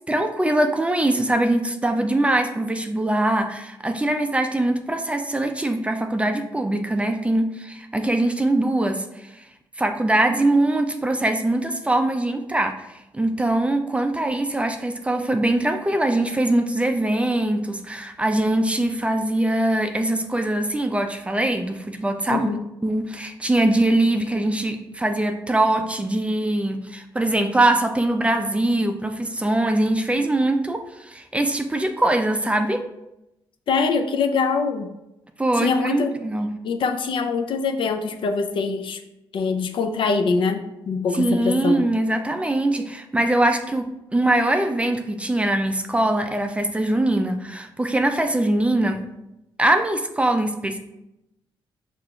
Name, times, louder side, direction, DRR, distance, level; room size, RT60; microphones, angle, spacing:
voice 1, 0.1-9.3 9.8-22.5 22.8-32.8 35.4-36.5 41.1-49.0 49.6-50.8, right 1 dB, 15° right, 6 dB, 0.4 m, -22 dB
voice 2, 22.3-22.6 33.7-34.9 35.6-36.1 36.6-39.0 39.3-41.9, left 4 dB, 65° left, 7 dB, 0.4 m, -23 dB
5.4 x 2.5 x 2.2 m, 0.89 s
cardioid pair, 70°, 9 cm